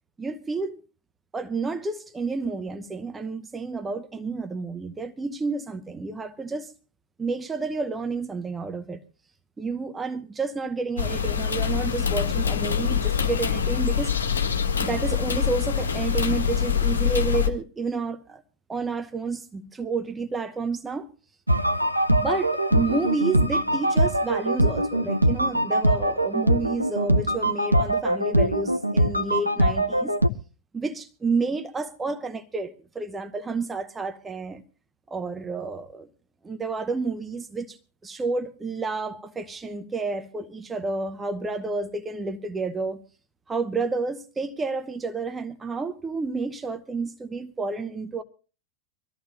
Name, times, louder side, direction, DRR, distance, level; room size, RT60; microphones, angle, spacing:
voice 1, 0.2-0.8 1.3-6.7 7.2-9.0 9.6-14.1 14.8-18.4 18.7-21.1 22.1-30.2 30.7-34.6 35.1-36.1 36.4-43.0 43.5-48.2, right 4 dB, 15° right, 0.9 m, -30 dB
sound 1, 11.0-17.5, left 7 dB, 70° left, 1.7 m, -25 dB
sound 2, 21.5-30.3, right 1 dB, 85° right, 0.7 m, -22 dB
24.0 x 14.0 x 2.6 m
figure-of-eight pair, 90°, 0 cm